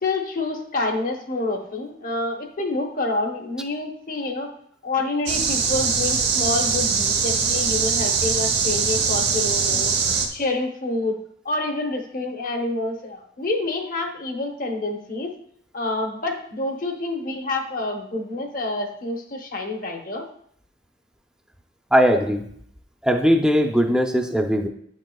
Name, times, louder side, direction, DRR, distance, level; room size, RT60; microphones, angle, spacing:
voice 1, 0.0-4.5 4.8-9.9 10.3-11.2 11.4-15.3 15.7-20.2, left 2 dB, 45° left, 3 dB, 1.0 m, -27 dB
sound 1, 5.3-10.3, right 5 dB, 60° right, 1.0 m, -22 dB
voice 2, 21.9-22.5 23.0-24.7, equal, 5° right, 3 dB, 0.6 m, -19 dB
9.3 x 6.4 x 2.3 m, 0.66 s
head